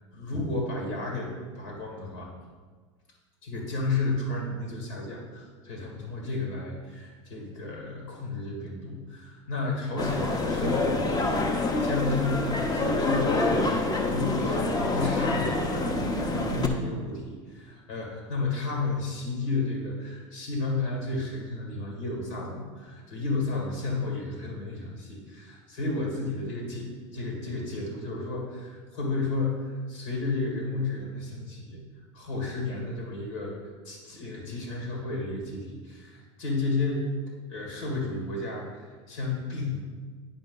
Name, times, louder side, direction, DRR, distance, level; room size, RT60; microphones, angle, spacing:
voice 1, 0.0-2.3 3.4-31.8 32.1-33.6 33.8-37.1 37.5-39.8, left 3 dB, 80° left, -1 dB, 2.4 m, -32 dB
sound 1, 10.0-16.7, left 2 dB, 25° left, 1.0 m, -27 dB
9.9 x 5.0 x 3.9 m, 1.5 s
hypercardioid pair, 95°, 16 cm